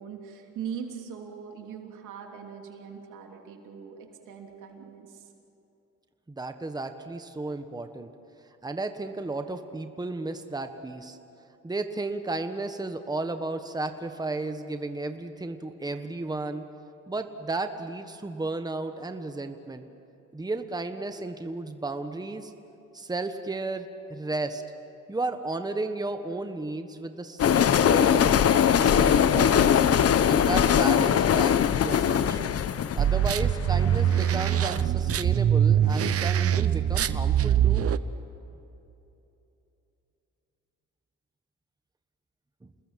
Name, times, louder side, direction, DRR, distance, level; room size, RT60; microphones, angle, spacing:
voice 1, 0.0-5.3, right 7 dB, 85° right, 2 dB, 3.3 m, -41 dB
voice 2, 6.3-8.1 8.6-11.2 11.6-16.6 17.1-19.9 20.3-22.5 22.9-24.6 25.1-29.8 30.3-32.5 32.9-37.9, right 2 dB, 15° right, 7 dB, 1.3 m, -33 dB
sound 1, 27.4-34.4, left 8 dB, 50° left, 0.9 m, -21 dB
sound 2, 33.0-38.0, right 9 dB, 50° right, 0.9 m, -23 dB
28.5 x 20.5 x 7.6 m, 2.9 s
cardioid pair, 90°, 30 cm